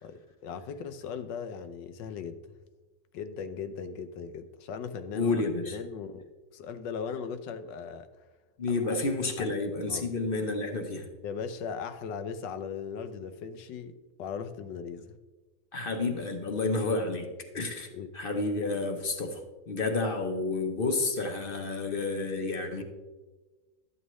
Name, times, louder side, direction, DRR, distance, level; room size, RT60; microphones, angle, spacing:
voice 1, 0.0-2.4 3.1-5.3 5.7-6.2 6.5-8.1 8.7-9.0 9.4-9.5 9.9-10.1 11.2-15.2 17.9-18.1, left 6 dB, 80° left, 10 dB, 1.3 m, -38 dB
voice 2, 5.1-5.8 8.6-11.1 15.7-17.3 17.5-17.9 18.1-19.4 19.7-22.8, left 3 dB, 45° left, 4 dB, 0.7 m, -30 dB
12.5 x 8.3 x 3.1 m, 1.3 s
omnidirectional pair, 1.9 m